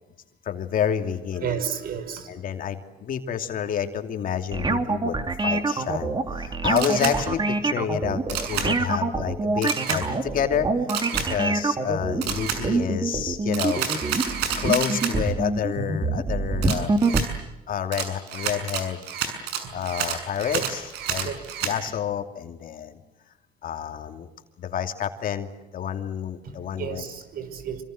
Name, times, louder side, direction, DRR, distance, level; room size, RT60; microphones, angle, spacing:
voice 1, 0.4-1.6 2.3-10.7 11.1-14.0 14.6-16.9 17.7-19.0 19.7-21.3 21.6-23.0 23.6-24.3 24.6-27.1, left 8 dB, 55° left, 6 dB, 2.8 m, -29 dB
voice 2, 1.4-2.3 19.6-19.7 20.5-20.7 21.2-21.4 26.8-27.8, right 8 dB, 60° right, 11 dB, 6.0 m, -31 dB
sound 1, 4.5-17.2, right 3 dB, 25° right, 3.0 m, -25 dB
Camera, 6.8-7.2 8.3-8.7 9.6-10.0 10.9-11.3 12.2-12.6 13.5-15.1 16.6-17.3 17.9-21.7, right 8 dB, 90° right, 6.7 m, -29 dB
27.5 x 26.0 x 7.9 m, 1.0 s
cardioid pair, 110°, 17 cm